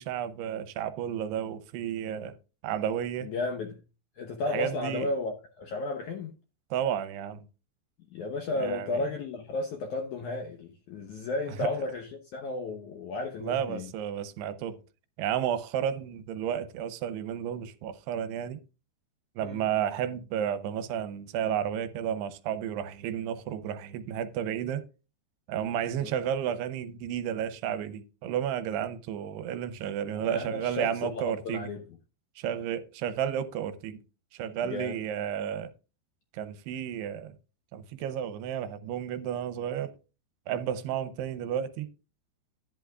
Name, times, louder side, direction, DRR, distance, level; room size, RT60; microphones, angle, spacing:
voice 1, 0.0-2.3 2.6-3.3 4.5-5.1 6.7-7.5 8.6-9.0 11.6-11.7 13.4-14.8 15.2-18.6 19.4-24.8 25.5-31.7 32.4-34.0 34.3-35.7 36.3-37.3 37.7-39.9 40.5-41.9, right 9 dB, 80° right, 2.8 m, -32 dB
voice 2, 3.2-3.8 4.2-6.3 8.1-13.9 19.4-19.7 26.0-26.2 30.2-31.8 34.6-35.0, left 2 dB, 70° left, 1.8 m, -34 dB
11.0 x 10.5 x 2.4 m
omnidirectional pair, 4.8 m